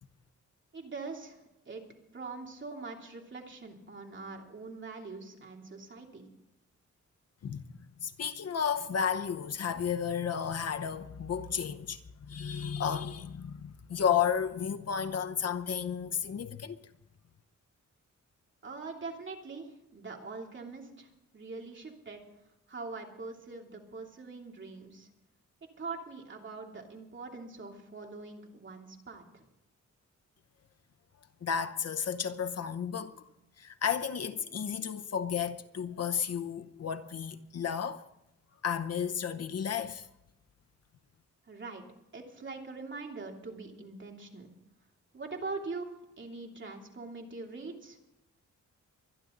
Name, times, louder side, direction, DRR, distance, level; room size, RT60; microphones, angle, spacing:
voice 1, 0.7-1.8 2.1-6.2 18.6-22.2 22.7-25.1 25.8-29.4 41.5-41.8 42.1-44.5 45.1-45.9 46.2-48.0, right 3 dB, 40° right, 2.9 m, -43 dB
voice 2, 7.4-16.8 31.4-33.2 33.6-38.0 38.6-40.1, left 7 dB, 55° left, 0.9 m, -33 dB
24.0 x 11.0 x 3.9 m
wide cardioid pair, 125°, 31 cm